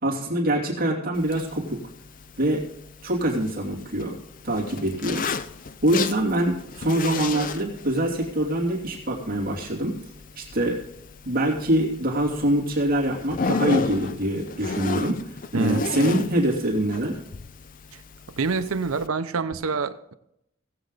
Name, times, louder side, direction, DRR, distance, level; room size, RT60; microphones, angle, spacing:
voice 1, 0.0-1.8 2.4-2.6 3.0-4.1 4.4-5.2 5.8-10.0 10.4-10.8 11.2-15.2 15.5-17.2, right 1 dB, 45° right, -3 dB, 2.8 m, -24 dB
Zipper (clothing), 1.1-19.1, left 4 dB, 40° left, 0.5 m, -34 dB
voice 2, 15.5-16.1 17.9-18.0 18.4-20.1, right 4 dB, 85° right, 11 dB, 0.7 m, -27 dB
18.5 x 7.8 x 4.0 m, 0.81 s
head